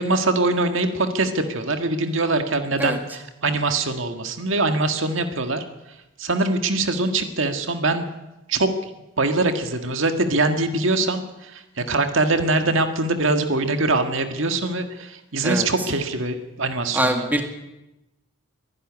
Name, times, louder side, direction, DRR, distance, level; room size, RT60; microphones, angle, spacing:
voice 1, 0.0-5.6 6.2-8.1 8.5-8.7 9.2-11.6 11.9-17.2, right 2 dB, 65° right, 7 dB, 1.8 m, -23 dB
voice 2, 16.9-17.4, right 1 dB, 10° right, 4 dB, 2.0 m, -22 dB
23.0 x 11.5 x 9.9 m, 0.97 s
head